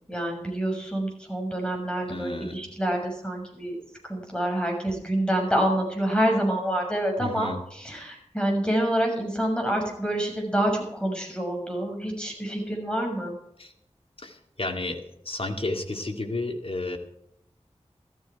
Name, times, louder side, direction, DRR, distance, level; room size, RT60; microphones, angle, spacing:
voice 1, 0.1-3.7 4.0-13.4, right 1 dB, 10° left, 1 dB, 6.7 m, -27 dB
voice 2, 2.1-2.6 7.2-7.6 13.6-13.7 14.2-17.0, left 2 dB, 50° left, 4 dB, 2.3 m, -32 dB
14.5 x 14.0 x 4.7 m, 0.74 s
wide cardioid pair, 55°, 12 cm